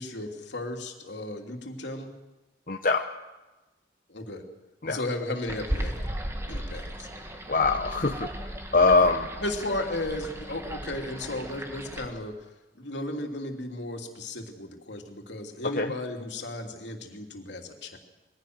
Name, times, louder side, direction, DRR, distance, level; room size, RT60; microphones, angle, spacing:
voice 1, 0.0-2.1 4.1-4.5 4.9-6.1 6.5-7.1 9.4-12.3 12.8-18.0, left 1 dB, 75° left, 3 dB, 3.0 m, -35 dB
voice 2, 2.7-3.1 4.8-5.0 7.5-8.3 8.7-9.3 15.7-15.9, left 3 dB, 45° left, 4 dB, 0.9 m, -22 dB
sound 1, 5.5-12.1, equal, 15° right, 1.8 m, -36 dB
22.0 x 16.5 x 8.0 m, 1.1 s
head